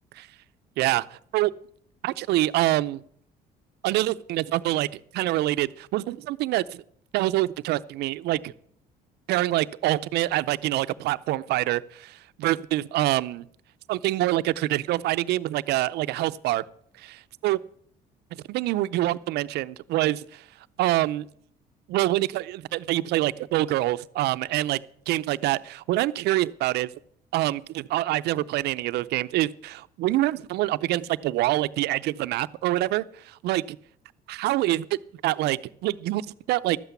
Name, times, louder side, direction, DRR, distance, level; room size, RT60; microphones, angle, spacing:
voice 1, 0.8-1.5 2.0-3.0 3.8-4.9 5.1-6.8 7.1-8.5 9.3-13.5 13.9-16.6 17.0-17.6 18.3-20.4 20.8-21.3 21.9-24.8 25.1-26.9 27.3-33.8 34.3-34.9 35.2-36.8, right 16 dB, 80° right, 14 dB, 0.5 m, -26 dB
12.5 x 8.2 x 8.1 m, 0.63 s
cardioid pair, 110°, 17 cm